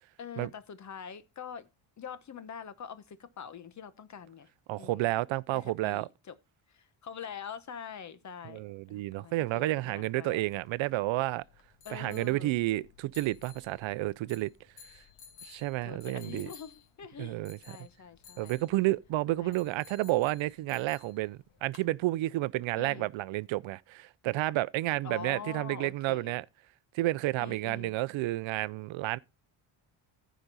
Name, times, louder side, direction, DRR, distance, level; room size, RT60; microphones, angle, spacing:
voice 1, 0.2-1.7 2.0-4.5 4.8-5.1 5.5-6.3 6.7-10.5 11.8-12.5 15.8-18.7 19.3-19.6 22.8-23.1 25.0-26.3 27.4-27.9, left 7 dB, 35° left, 1.0 m, -45 dB
voice 2, 4.7-6.1 8.4-11.4 11.9-14.5 15.4-16.5 17.2-17.6 18.4-26.4 26.9-29.2, right 18 dB, 70° right, 0.6 m, -31 dB
sound 1, 10.3-21.9, left 7 dB, 85° left, 2.4 m, -56 dB
14.5 x 5.1 x 4.0 m
cardioid pair, 155°, 49 cm